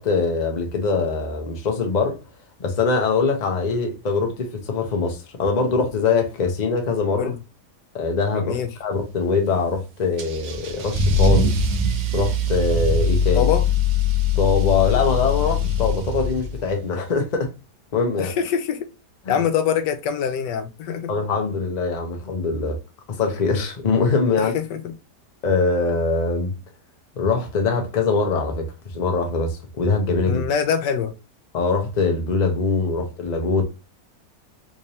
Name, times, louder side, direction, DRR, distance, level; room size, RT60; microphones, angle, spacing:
voice 1, 0.0-2.2 2.6-7.3 7.9-11.5 12.1-13.5 14.4-17.5 17.9-18.3 19.3-19.4 21.1-22.8 23.2-24.5 25.4-26.5 27.2-28.7 28.9-30.4 31.5-33.6, left 4 dB, 40° left, 0.6 m, -22 dB
voice 2, 8.3-8.7 13.3-13.6 18.2-18.9 19.3-21.1 24.3-24.9 30.3-31.1, left 8 dB, 85° left, 1.3 m, -24 dB
Car / Engine starting / Accelerating revving vroom, 10.2-16.7, left 3 dB, 75° right, 1.3 m, -21 dB
3.7 x 3.2 x 2.7 m
omnidirectional pair, 1.8 m